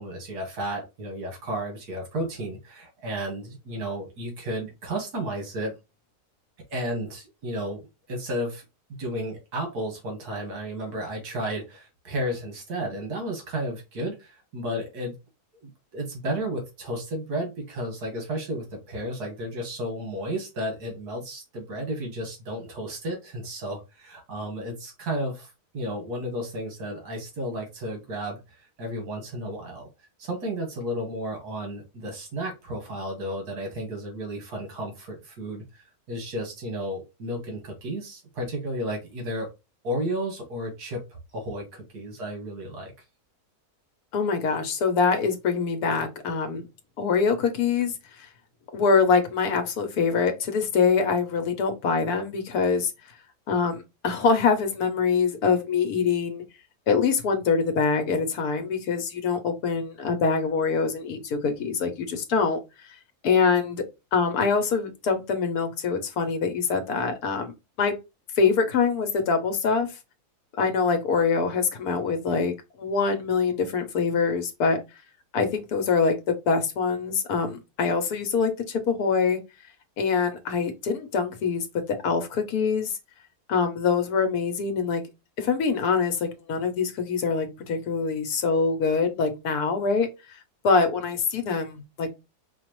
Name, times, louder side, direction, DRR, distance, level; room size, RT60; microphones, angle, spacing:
voice 1, 0.0-5.8 6.7-8.6 9.0-15.1 15.6-29.9 30.2-39.5 39.8-42.9, right 1 dB, 80° right, 1.9 m, -33 dB
voice 2, 44.1-46.7 47.0-47.9 48.7-52.9 53.5-56.5 56.9-62.6 63.2-63.8 64.1-68.0 68.4-69.9 70.5-74.8 75.3-79.4 80.0-82.9 83.5-85.0 85.4-90.4 90.6-92.1, left 5 dB, 75° left, 1.3 m, -24 dB
5.1 x 2.4 x 3.0 m
omnidirectional pair, 1.7 m